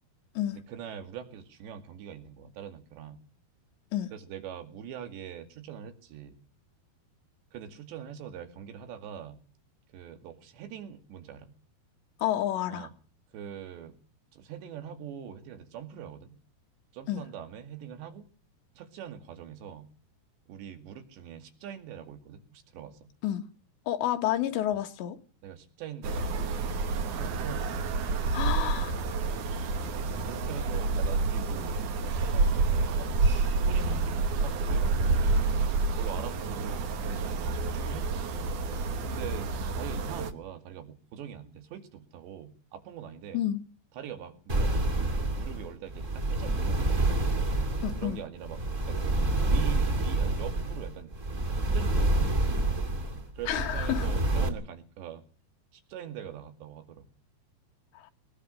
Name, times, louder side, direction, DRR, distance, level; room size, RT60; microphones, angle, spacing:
voice 1, 0.5-3.2 4.1-6.4 7.5-9.4 9.9-11.5 12.7-12.9 13.3-14.0 14.3-16.4 16.9-18.3 18.8-19.9 20.5-23.1 25.4-27.9 30.2-35.3 36.0-38.2 39.0-43.4 44.0-44.9 45.3-47.4 48.0-49.2 49.5-51.1 51.7-52.6 53.4-55.2 55.7-57.1, right 9 dB, 80° right, 4.5 m, -43 dB
voice 2, 12.2-12.9 17.1-17.2 23.2-23.5 23.9-25.2 28.3-29.0 43.3-43.6 47.8-48.2 53.5-54.1 58.0-58.1, left 12 dB, 85° left, 3.5 m, -30 dB
sound 1, 26.0-40.3, right 3 dB, 60° right, 2.5 m, -28 dB
sound 2, 44.5-54.5, right 2 dB, 20° right, 2.2 m, -28 dB
22.0 x 20.0 x 6.4 m
omnidirectional pair, 5.0 m